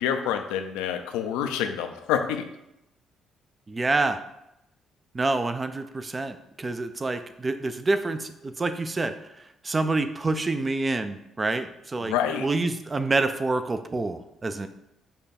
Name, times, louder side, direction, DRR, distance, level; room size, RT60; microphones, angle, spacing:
voice 1, 0.0-2.5 12.0-12.5, left 9 dB, 80° left, 7 dB, 0.4 m, -27 dB
voice 2, 3.7-4.2 5.1-14.7, right 3 dB, 30° right, 10 dB, 0.4 m, -27 dB
5.4 x 2.3 x 4.1 m, 0.86 s
hypercardioid pair, 50°, 0 cm